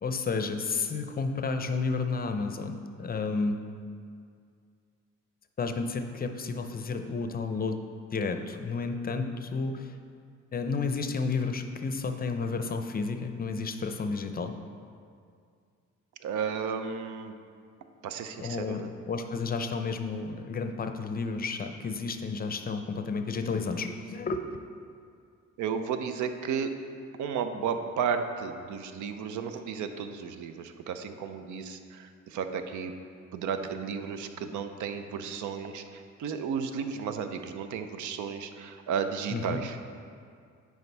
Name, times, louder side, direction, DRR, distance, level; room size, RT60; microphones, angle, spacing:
voice 1, 0.0-3.6 5.6-7.8 8.1-10.0 10.5-14.5 18.4-18.8 19.1-24.4 39.3-39.6, left 4 dB, 30° left, 7 dB, 0.5 m, -31 dB
voice 2, 16.2-17.3 18.0-18.9 25.6-26.7 27.2-32.9 33.3-39.8, right 6 dB, 75° right, 8 dB, 0.6 m, -33 dB
9.3 x 4.8 x 3.3 m, 2.3 s
cardioid pair, 90°, 30 cm